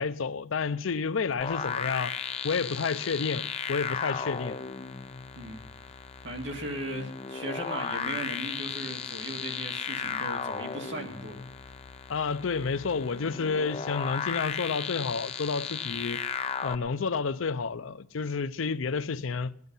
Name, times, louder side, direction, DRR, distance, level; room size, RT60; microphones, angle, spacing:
voice 1, 0.0-2.1 2.4-4.6 12.1-16.2 16.6-19.5, left 5 dB, 80° left, 0.5 m, -30 dB
sound 1, 1.4-16.8, left 6 dB, 30° left, 0.5 m, -35 dB
voice 2, 5.3-6.0 6.2-11.4, right 1 dB, 65° right, 2.3 m, -37 dB
17.5 x 11.0 x 5.5 m
head